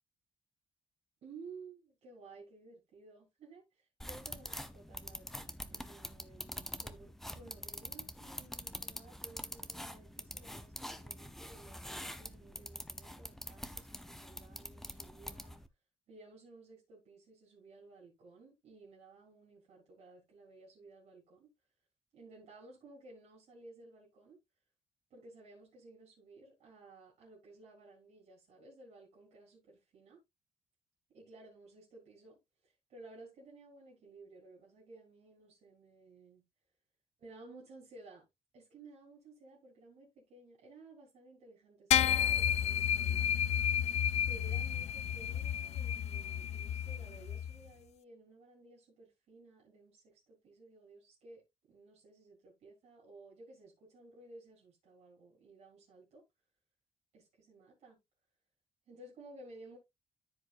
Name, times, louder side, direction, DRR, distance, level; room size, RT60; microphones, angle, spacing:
voice 1, 1.2-15.6 16.1-21.5 22.1-24.4 25.1-30.2 31.1-36.4 37.2-38.2 38.5-43.4 44.3-56.2 57.1-58.0 58.9-59.8, right 3 dB, 80° right, 3.8 m, -56 dB
sound 1, 4.0-15.7, equal, 5° left, 0.8 m, -45 dB
sound 2, 41.9-47.5, left 9 dB, 75° left, 0.4 m, -31 dB
14.0 x 5.3 x 2.5 m
cardioid pair, 140°, 11 cm